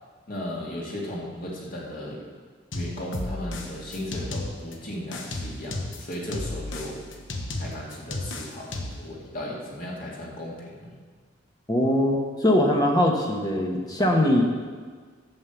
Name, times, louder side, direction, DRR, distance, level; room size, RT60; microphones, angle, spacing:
voice 1, 0.3-2.2 2.7-7.0 7.6-11.0, left 1 dB, 45° left, -3 dB, 2.4 m, -36 dB
sound 1, 2.7-4.7 5.1-9.1, left 2 dB, 75° left, 1.1 m, -34 dB
voice 2, 11.7-14.4, left 1 dB, 20° left, 1 dB, 1.1 m, -21 dB
9.4 x 7.5 x 7.0 m, 1.5 s
head